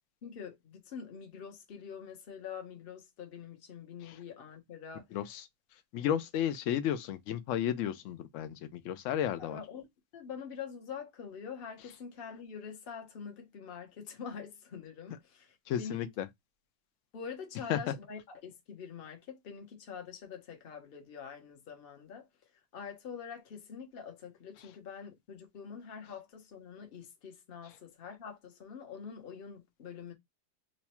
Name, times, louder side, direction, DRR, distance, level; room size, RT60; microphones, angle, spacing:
voice 1, 0.2-5.1 9.4-9.9 10.1-16.1 17.1-30.1, left 6 dB, 40° left, 1.0 m, -45 dB
voice 2, 5.1-5.4 5.9-9.6 15.7-16.3 17.7-17.9, left 10 dB, 70° left, 0.8 m, -33 dB
3.0 x 2.3 x 4.2 m
omnidirectional pair, 1.7 m